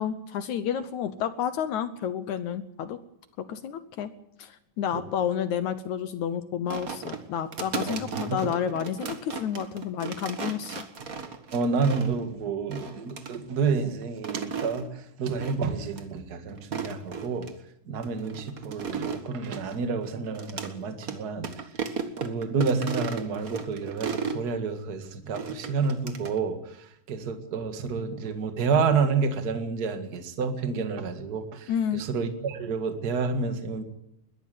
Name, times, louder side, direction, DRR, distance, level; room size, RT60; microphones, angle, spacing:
voice 1, 0.0-3.0 3.4-4.1 4.4-10.8 31.7-32.0, left 8 dB, 70° left, 11 dB, 2.1 m, -30 dB
sound 1, 6.7-12.3 12.7-13.4 14.0-14.8 15.4-15.7 15.9-16.0 16.6-17.5 18.0-20.7 21.0-21.2 21.4-24.4 25.3-26.4, right 5 dB, 70° right, 0.8 m, -35 dB
voice 2, 8.2-8.5 11.5-17.5 17.9-21.5 22.2-33.8, right 5 dB, 35° right, 7 dB, 1.9 m, -29 dB
21.5 x 13.5 x 9.3 m, 0.76 s
omnidirectional pair, 4.1 m